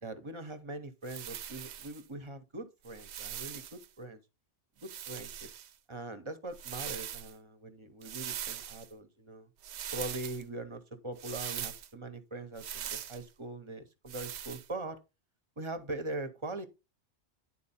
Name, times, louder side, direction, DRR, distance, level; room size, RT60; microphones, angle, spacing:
voice 1, 0.0-4.2 4.8-5.5 5.9-9.5 9.9-15.0 15.6-16.7, right 2 dB, 30° right, 0.8 m, -42 dB
sound 1, 1.0-2.0 2.8-3.9 4.8-5.7 6.5-7.3 8.0-8.9 9.6-10.4 11.2-11.9 12.6-13.2 14.1-14.7, right 10 dB, 75° right, 0.9 m, -41 dB
9.9 x 4.3 x 4.2 m
omnidirectional pair, 1.2 m